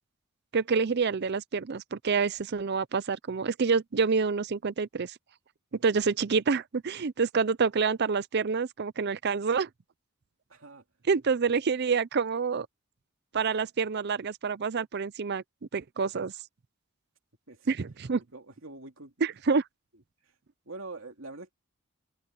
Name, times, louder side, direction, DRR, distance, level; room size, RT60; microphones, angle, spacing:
voice 1, 0.5-5.1 5.8-9.7 11.1-12.7 13.3-15.4 15.7-16.3 17.7-18.2 19.2-19.6, right 5 dB, 50° right, 0.5 m, -27 dB
voice 2, 10.5-10.8 17.5-17.7 18.3-19.1 20.2-20.4 20.6-21.5, right 2 dB, 65° right, 2.9 m, -44 dB
head